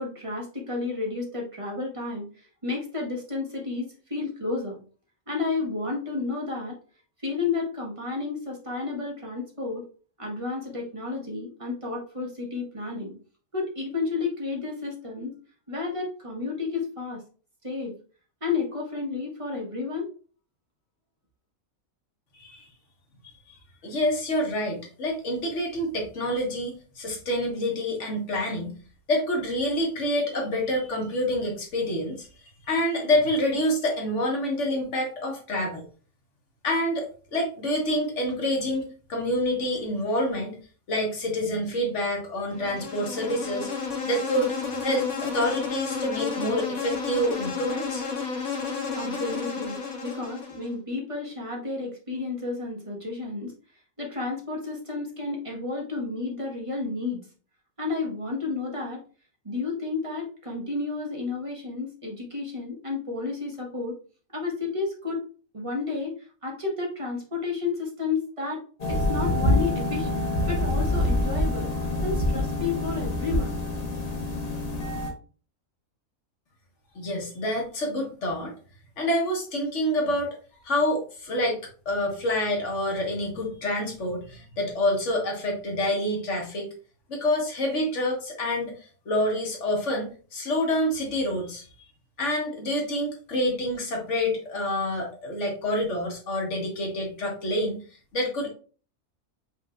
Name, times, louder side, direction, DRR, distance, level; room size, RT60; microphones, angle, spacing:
voice 1, 0.0-4.8 5.3-6.8 7.2-9.9 10.2-13.1 13.5-15.3 15.7-17.2 17.6-18.0 18.4-20.1 48.9-53.5 54.0-57.2 57.8-59.0 59.4-64.0 64.3-65.2 65.5-68.6 68.9-71.7 72.0-73.6, left 4 dB, 25° right, -1 dB, 1.4 m, -31 dB
voice 2, 23.8-28.8 29.1-32.3 32.7-35.9 36.6-40.6 40.9-43.7 44.0-44.5 44.8-48.1 77.0-78.5 79.0-80.4 80.6-81.6 81.9-86.7 87.1-88.8 89.1-91.7 92.2-97.8 98.1-98.5, left 1 dB, 60° left, 1 dB, 1.6 m, -27 dB
Insect, 42.5-50.7, left 5 dB, 75° left, 2.0 m, -32 dB
sound 1, 68.8-75.1, left 1 dB, 35° left, 0.9 m, -26 dB
5.7 x 3.6 x 2.5 m, 0.39 s
omnidirectional pair, 1.5 m